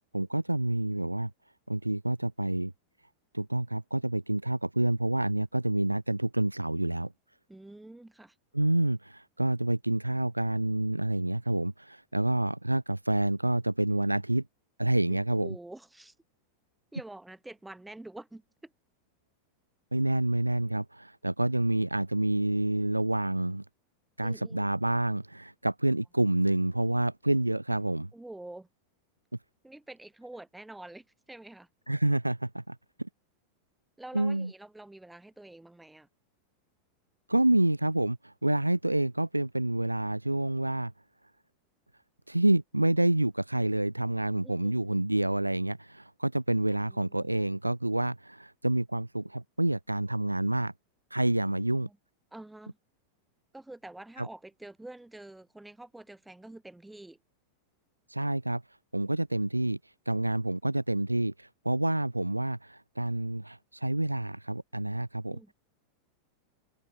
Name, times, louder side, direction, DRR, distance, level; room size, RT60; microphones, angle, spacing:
voice 1, 0.1-1.3 1.7-2.7 3.3-7.1 8.5-14.4 14.8-15.5 19.9-23.6 24.2-28.1 31.9-33.1 34.1-34.5 37.3-40.9 42.3-50.7 51.1-51.9 54.2-54.3 58.1-58.6 58.9-59.8 60.1-65.4, right 1 dB, 85° right, 0.5 m, -28 dB
voice 2, 7.5-8.4 15.1-16.1 16.9-18.7 24.2-24.7 28.1-28.7 29.6-31.7 34.0-36.1 44.4-44.9 46.7-47.5 51.4-52.0 52.3-52.8 53.5-57.2 65.3-65.5, right 2 dB, 5° right, 3.5 m, -47 dB
figure-of-eight pair, 90°, 0 cm